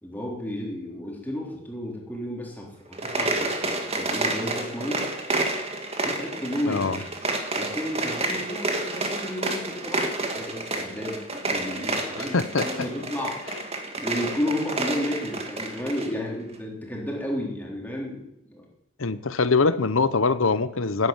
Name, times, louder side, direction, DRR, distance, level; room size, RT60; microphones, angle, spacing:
voice 1, 0.0-5.1 6.0-7.1 7.5-13.4 14.0-18.7, left 1 dB, 10° left, -2 dB, 3.6 m, -32 dB
sound 1, 2.9-16.1, right 2 dB, 30° right, 2.0 m, -29 dB
voice 2, 6.7-7.0 12.2-12.7 19.0-21.1, left 4 dB, 70° left, 14 dB, 0.9 m, -23 dB
12.5 x 9.9 x 9.0 m, 0.85 s
head